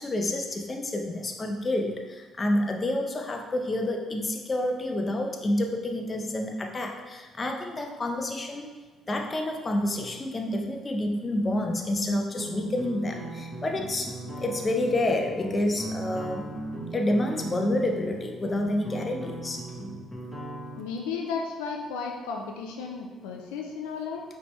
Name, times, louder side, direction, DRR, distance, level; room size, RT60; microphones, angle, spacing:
voice 1, 0.0-8.6 9.1-14.1 14.4-16.5 16.9-19.6, left 1 dB, 30° left, 3 dB, 0.7 m, -28 dB
sound 1, 12.4-20.8, right 2 dB, 10° left, 1.3 m, -38 dB
voice 2, 20.8-24.2, left 5 dB, 90° left, 1 dB, 0.4 m, -34 dB
5.0 x 3.3 x 3.1 m, 1.4 s
supercardioid pair, 60°, 0 cm